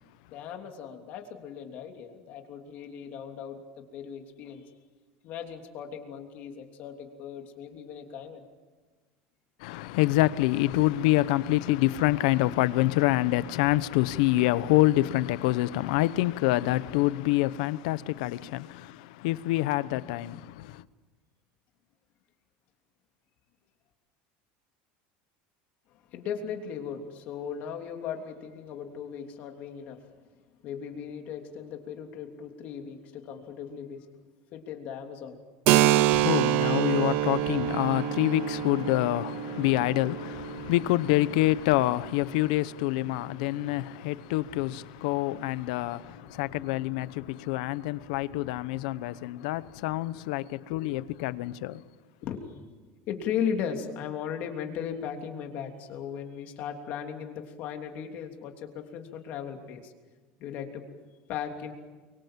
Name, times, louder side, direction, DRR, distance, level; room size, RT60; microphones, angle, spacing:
voice 1, 0.3-4.7 5.2-8.4 26.1-30.0 30.6-34.0 34.5-35.4 50.7-50.8 52.2-52.6 53.1-59.9 60.4-60.8 61.3-61.7, left 8 dB, 45° left, 3.2 m, -37 dB
voice 2, 9.6-20.8 35.8-51.8, left 17 dB, 75° left, 0.9 m, -26 dB
Keyboard (musical), 35.7-43.0, right 13 dB, 50° right, 0.8 m, -27 dB
29.5 x 24.0 x 7.6 m
cardioid pair, 175°, 4 cm